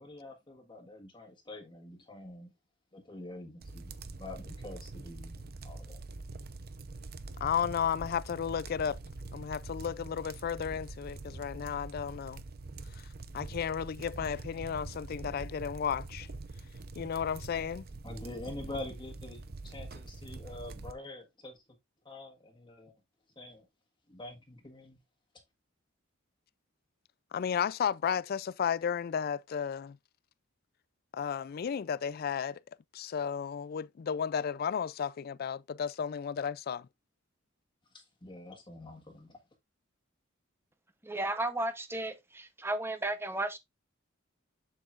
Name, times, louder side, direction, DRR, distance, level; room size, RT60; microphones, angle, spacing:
voice 1, 0.0-2.5 2.9-6.0 18.0-21.6 22.0-22.9 23.3-23.7 24.1-25.0 37.9-39.4, left 2 dB, 25° left, 1.5 m, -46 dB
sound 1, 3.6-20.9, right 3 dB, 50° right, 0.7 m, -44 dB
voice 2, 7.4-9.0 9.3-12.4 13.3-16.3 17.0-17.9 27.3-30.0 31.1-32.6 32.9-36.9, left 7 dB, 45° left, 0.3 m, -33 dB
voice 3, 41.0-43.6, right 2 dB, 10° right, 0.8 m, -34 dB
7.6 x 7.4 x 2.5 m
head